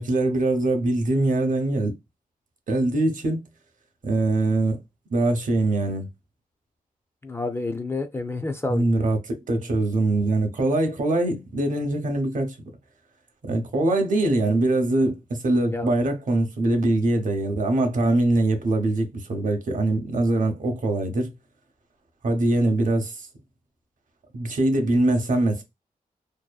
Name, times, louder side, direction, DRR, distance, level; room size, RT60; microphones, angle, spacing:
voice 1, 0.0-1.9 2.7-3.4 4.0-4.8 5.1-6.1 8.7-12.6 13.4-21.3 22.2-23.3 24.3-25.6, right 2 dB, 60° right, 0.6 m, -23 dB
voice 2, 7.2-9.1 15.7-15.9, left 3 dB, 15° left, 0.3 m, -29 dB
2.6 x 2.0 x 2.3 m
wide cardioid pair, 100°, 15 cm